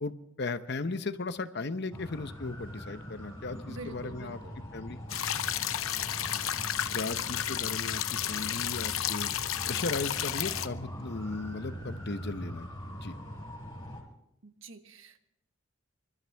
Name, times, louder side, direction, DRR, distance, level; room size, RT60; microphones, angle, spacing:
voice 1, 0.0-4.4 4.7-5.0 6.9-9.3 9.7-13.1, left 3 dB, 55° left, 11 dB, 0.9 m, -36 dB
sound 1, 1.9-14.0, equal, 20° left, 5.5 m, -42 dB
voice 2, 3.6-4.7 14.4-15.2, right 3 dB, 75° right, 8 dB, 1.3 m, -46 dB
sound 2, 5.1-10.7, left 10 dB, 90° left, 0.8 m, -32 dB
27.5 x 13.5 x 3.5 m, 0.82 s
head